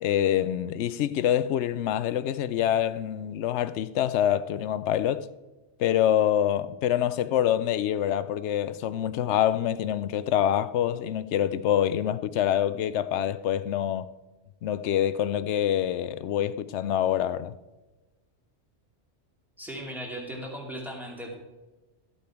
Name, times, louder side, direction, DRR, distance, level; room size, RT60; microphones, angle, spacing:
voice 1, 0.0-5.3 5.8-14.1 14.6-17.6, left 10 dB, 80° left, 0.9 m, -26 dB
voice 2, 19.6-21.3, equal, ahead, 2.4 m, -37 dB
13.5 x 8.5 x 4.5 m
omnidirectional pair, 1.2 m